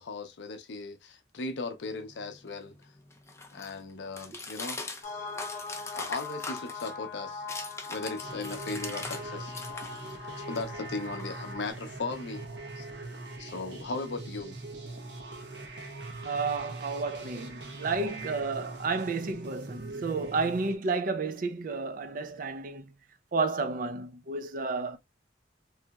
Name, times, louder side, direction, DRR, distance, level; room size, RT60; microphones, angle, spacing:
voice 1, 0.0-2.7 3.5-4.8 5.9-7.5 7.9-9.5 10.4-12.5 12.8-12.9 13.4-14.6, left 3 dB, 70° left, 0.5 m, -37 dB
sound 1, 1.9-9.3 9.5-11.7, left 3 dB, 15° left, 0.5 m, -42 dB
sound 2, 5.0-11.7, left 4 dB, 40° left, 0.9 m, -41 dB
sound 3, 8.2-20.8, right 2 dB, 70° right, 0.9 m, -42 dB
voice 2, 16.2-22.9 23.3-25.0, right 4 dB, 50° right, 0.4 m, -31 dB
3.2 x 2.8 x 2.2 m
head